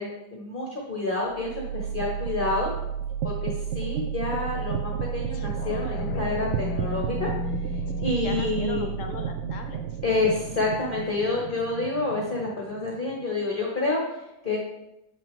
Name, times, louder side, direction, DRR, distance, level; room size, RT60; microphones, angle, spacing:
voice 1, 0.0-2.7 3.2-7.3 8.0-8.9 10.0-14.6, left 3 dB, 35° left, -2 dB, 1.1 m, -28 dB
sound 1, 1.3-13.2, right 8 dB, 85° right, 0.6 m, -32 dB
sound 2, 5.3-10.4 10.8-10.9, left 9 dB, 85° left, 1.2 m, -37 dB
voice 2, 8.0-10.0 10.4-10.5, left 5 dB, 60° left, 5 dB, 1.0 m, -39 dB
7.4 x 5.8 x 3.6 m, 0.88 s
omnidirectional pair, 1.8 m